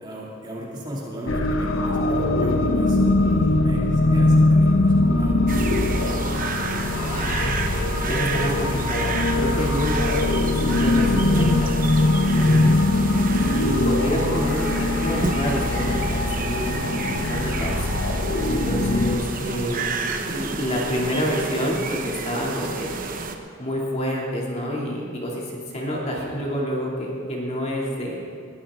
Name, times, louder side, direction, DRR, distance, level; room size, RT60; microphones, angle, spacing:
voice 1, 0.0-5.5 12.4-12.8 18.2-18.5, equal, 20° right, -4 dB, 2.5 m, -36 dB
sound 1, 1.3-19.2, left 2 dB, 75° left, 0.9 m, -21 dB
sound 2, 5.5-23.3, right 4 dB, 40° right, 1.0 m, -31 dB
voice 2, 6.9-7.7 8.0-10.2 10.6-11.8 12.2-12.7 13.4-17.9 18.5-22.9 23.6-28.2, equal, 30° left, -3 dB, 2.7 m, -28 dB
21.0 x 14.0 x 3.7 m, 2.4 s
head